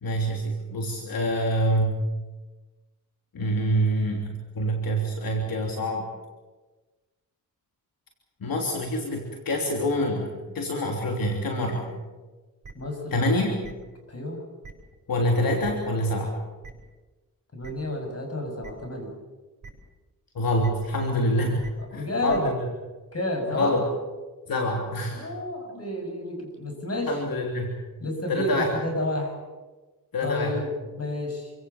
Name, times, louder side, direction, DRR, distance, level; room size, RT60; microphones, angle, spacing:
voice 1, 0.0-1.9 3.3-6.1 8.4-11.9 13.1-13.6 15.1-16.3 20.4-21.6 21.9-22.5 23.5-23.8 24.5-25.2 27.1-27.8 28.3-28.7 30.1-30.6, equal, 75° left, 1 dB, 3.3 m, -26 dB
sound 1, 12.6-12.7 13.6-13.7 14.6-14.7 15.6-15.7 16.6-16.7 17.6-17.7 18.6-18.7 19.6-19.7 20.6-20.7 21.6-21.7 22.3-22.4, right 4 dB, 50° right, 6.0 m, -42 dB
voice 2, 12.8-13.2 14.1-14.4 17.5-19.1 21.9-22.5 23.1-23.8 25.1-27.2 28.0-29.3 30.2-31.5, left 1 dB, 40° left, 3 dB, 7.0 m, -30 dB
27.0 x 17.0 x 7.2 m, 1.2 s
cardioid pair, 75°, 36 cm